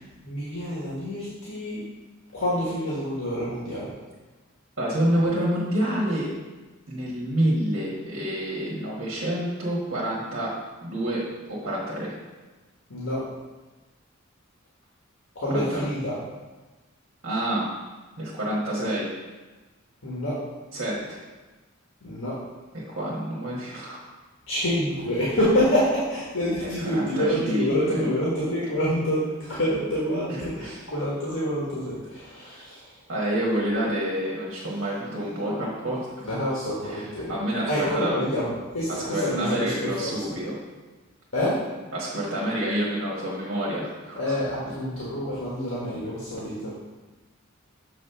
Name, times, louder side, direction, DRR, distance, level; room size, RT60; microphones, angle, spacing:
voice 1, 0.2-1.8 2.3-3.9 12.9-13.2 15.3-16.2 20.0-20.4 22.0-22.4 24.5-33.0 36.2-37.3 37.7-40.3 41.3-41.6 44.2-46.7, equal, 70° left, -7 dB, 1.5 m, -27 dB
voice 2, 4.8-6.3 6.9-12.1 15.5-15.8 17.2-17.7 18.2-19.1 20.7-21.2 22.7-24.0 26.6-28.0 30.3-30.8 32.4-32.6 33.1-36.2 36.8-38.2 38.9-40.6 41.9-44.4, right 1 dB, 65° right, -5 dB, 1.5 m, -28 dB
7.4 x 3.3 x 5.6 m, 1.2 s
head